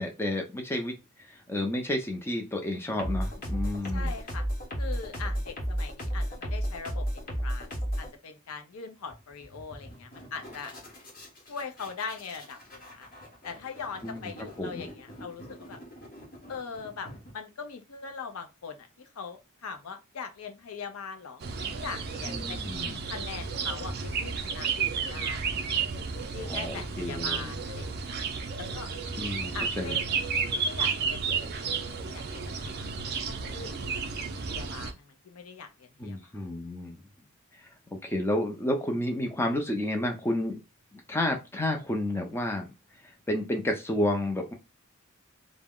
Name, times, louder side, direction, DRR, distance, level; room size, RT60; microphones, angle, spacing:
voice 1, 0.0-4.1 14.0-14.3 14.6-14.8 22.2-23.0 26.4-27.6 29.2-30.0 36.0-37.0 37.6-37.7 38.0-40.6 40.9-42.7 43.3-44.5, left 1 dB, 10° left, 0.5 m, -31 dB
sound 1, 3.0-8.1 9.1-9.2 9.4-17.3, equal, 40° left, 0.9 m, -34 dB
voice 2, 3.9-4.4 4.8-10.7 11.5-13.1 13.4-15.8 16.5-18.9 19.2-22.6 23.1-25.5 26.3-28.1 28.6-28.9 29.5-30.0 30.6-31.3 31.6-31.7 32.1-32.9 33.3-33.8 34.4-36.3, left 5 dB, 85° left, 0.5 m, -41 dB
sound 2, 21.4-34.9, right 5 dB, 50° right, 0.4 m, -32 dB
2.3 x 2.0 x 3.5 m
head